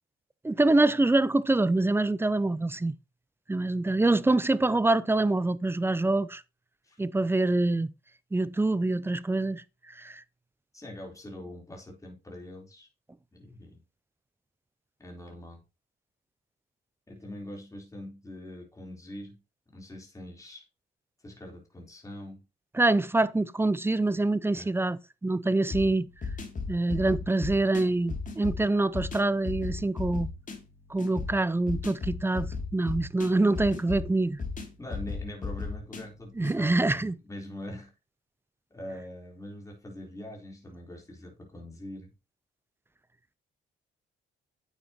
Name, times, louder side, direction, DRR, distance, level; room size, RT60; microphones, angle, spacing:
voice 1, 0.4-2.9 3.5-6.4 7.0-7.9 8.3-10.2 22.7-26.1 26.7-30.3 30.9-34.4 36.4-37.2, right 2 dB, 10° right, 0.6 m, -25 dB
voice 2, 10.7-12.9 13.3-13.8 15.0-15.6 17.1-19.4 19.7-20.6 21.2-22.4 24.5-24.7 34.8-37.9 38.7-42.1, left 1 dB, 15° left, 3.9 m, -43 dB
sound 1, 25.7-36.6, left 4 dB, 40° left, 2.8 m, -36 dB
9.2 x 7.7 x 3.0 m
cardioid pair, 90°, 20 cm